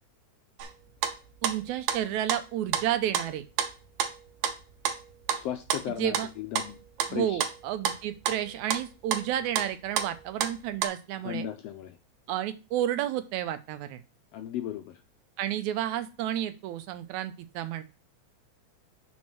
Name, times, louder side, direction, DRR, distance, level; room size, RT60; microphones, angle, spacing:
sound 1, 0.6-0.7 1.0-6.3 6.6-7.1 7.4-8.8 9.1-10.9, right 8 dB, 70° right, 2.0 m, -30 dB
voice 1, 1.4-3.4 6.0-6.3 7.1-11.5 12.3-14.0 15.4-17.8, right 11 dB, 85° right, 10 dB, 2.1 m, -31 dB
voice 2, 5.3-6.8 7.1-7.4 11.2-12.0 14.3-15.0, left 10 dB, 80° left, 7 dB, 1.5 m, -35 dB
6.3 x 4.2 x 5.7 m, 0.31 s
omnidirectional pair, 3.4 m